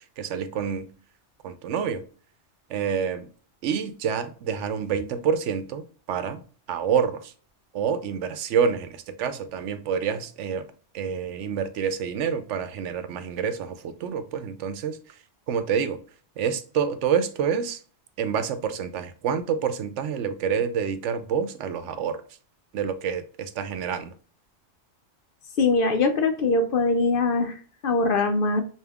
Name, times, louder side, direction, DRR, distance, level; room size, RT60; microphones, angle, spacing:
voice 1, 0.2-0.9 1.4-2.0 2.7-3.3 3.6-6.4 6.7-7.3 7.7-10.6 10.9-15.0 15.5-16.0 16.4-17.8 18.2-22.2 22.7-24.1, right 7 dB, 85° right, 0.9 m, -27 dB
voice 2, 25.6-28.6, left 3 dB, 60° left, 0.7 m, -22 dB
5.1 x 2.7 x 2.3 m
omnidirectional pair, 1.2 m